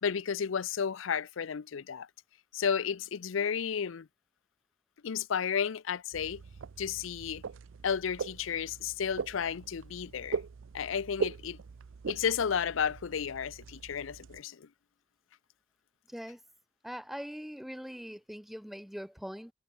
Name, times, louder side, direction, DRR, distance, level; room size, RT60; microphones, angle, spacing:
voice 1, 0.0-2.1 2.5-4.1 5.0-6.4 6.8-7.4 7.8-10.4 10.7-11.6 12.1-14.7, left 7 dB, 75° left, 0.5 m, -32 dB
sound 1, 6.1-14.4, right 5 dB, 70° right, 0.5 m, -40 dB
voice 2, 16.1-16.4 16.8-19.5, equal, ahead, 0.6 m, -42 dB
head